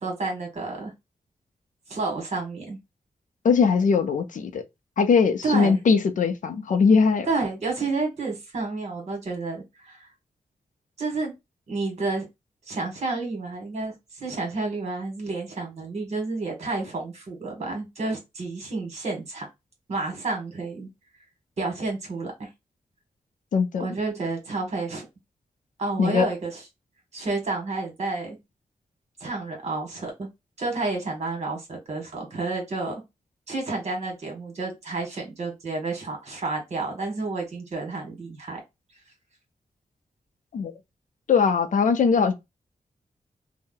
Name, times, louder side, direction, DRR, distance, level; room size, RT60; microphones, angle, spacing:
voice 1, 0.0-0.9 1.9-2.8 5.4-5.8 7.3-10.1 11.0-11.3 11.7-12.3 12.7-13.9 14.2-19.5 19.9-20.9 21.6-22.5 23.8-25.0 25.8-26.5 27.1-28.4 29.2-30.3 30.6-32.9 33.5-38.6, right 3 dB, 50° right, 1.4 m, -30 dB
voice 2, 3.4-4.6 5.0-7.3 23.5-23.9 26.0-26.3 40.5-40.7 41.3-42.3, left 5 dB, 70° left, 0.5 m, -20 dB
2.7 x 2.1 x 3.7 m
wide cardioid pair, 160°, 14 cm